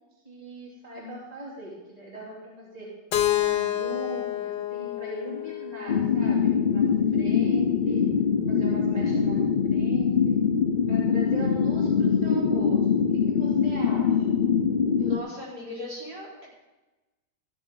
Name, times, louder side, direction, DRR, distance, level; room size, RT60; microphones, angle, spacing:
voice 1, 0.2-2.9 3.2-8.1 8.5-10.4 10.9-12.9 13.3-14.5, equal, 25° right, -5 dB, 2.9 m, -40 dB
Keyboard (musical), 3.1-7.0, left 13 dB, 85° left, 1.3 m, -29 dB
sound 1, 5.9-15.2, left 6 dB, 60° left, 0.5 m, -23 dB
voice 2, 15.0-16.5, left 2 dB, 65° right, -7 dB, 4.9 m, -37 dB
14.0 x 12.5 x 3.8 m, 1.1 s
omnidirectional pair, 1.8 m